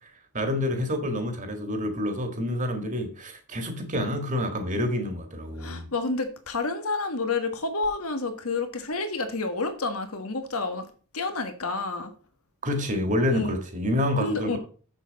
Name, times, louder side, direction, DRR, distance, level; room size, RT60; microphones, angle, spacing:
voice 1, 0.3-5.9 12.6-14.6, left 1 dB, 35° right, 1.8 m, -28 dB
voice 2, 5.6-10.9 11.1-12.1 13.3-13.6 14.2-14.6, left 3 dB, 75° left, 1.5 m, -29 dB
7.6 x 7.1 x 4.1 m
head